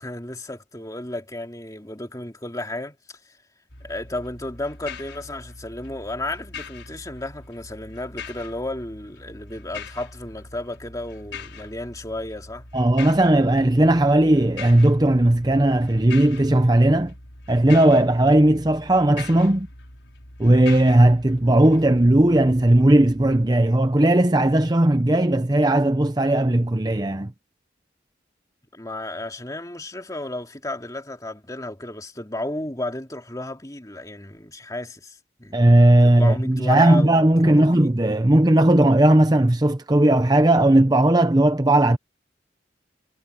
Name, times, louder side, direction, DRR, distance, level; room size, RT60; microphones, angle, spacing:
voice 1, 0.0-3.4 3.8-12.6 28.7-37.9, left 1 dB, 20° left, 2.9 m, -33 dB
sound 1, 3.7-23.5, left 4 dB, 85° left, 6.2 m, -42 dB
voice 2, 12.7-17.1 17.5-19.7 20.4-27.3 35.5-42.0, right 1 dB, 20° right, 0.8 m, -17 dB
head